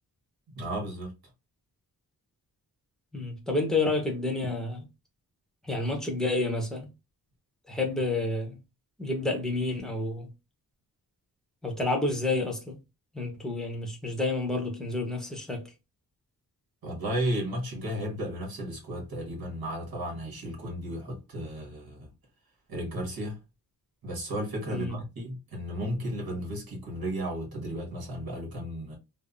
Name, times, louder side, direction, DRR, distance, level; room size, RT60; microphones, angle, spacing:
voice 1, 0.5-1.1 16.8-22.1 22.7-23.4 24.0-29.0, equal, 70° right, 1.4 m, -34 dB
voice 2, 3.1-4.9 5.6-6.9 7.7-8.6 9.0-10.3 11.6-12.8 13.1-15.7 24.7-25.0, left 2 dB, ahead, 0.8 m, -29 dB
3.4 x 2.0 x 2.5 m
wide cardioid pair, 155°, 37 cm